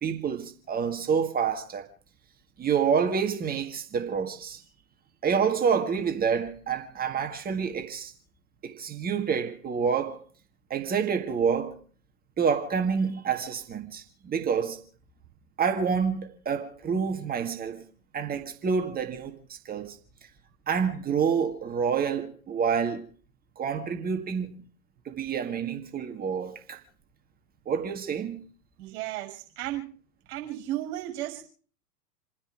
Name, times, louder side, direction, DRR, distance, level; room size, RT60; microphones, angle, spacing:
voice 1, 0.0-1.9 2.6-4.6 5.2-8.1 8.6-10.2 10.7-11.8 12.4-14.8 15.6-17.8 18.1-20.0 20.7-23.1 23.6-24.5 25.1-26.8 27.7-28.4, right 6 dB, 20° right, 1.8 m, -28 dB
voice 2, 28.8-29.9 30.3-31.5, right 14 dB, 40° right, 6.0 m, -34 dB
29.0 x 10.0 x 5.0 m
hypercardioid pair, 110°, 49 cm